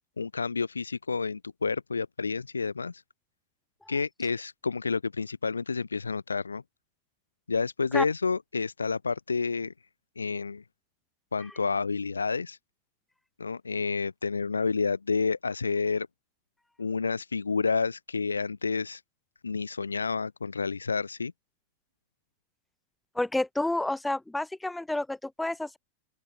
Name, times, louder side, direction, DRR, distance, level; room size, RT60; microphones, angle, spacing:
voice 1, 0.2-3.0 3.9-6.6 7.5-9.7 10.2-10.6 11.3-12.6 13.4-16.1 16.8-19.0 19.4-21.3, left 4 dB, 75° left, 0.9 m, -29 dB
voice 2, 23.2-25.8, left 2 dB, 5° left, 2.2 m, -29 dB
open air
figure-of-eight pair, 90°, 0 cm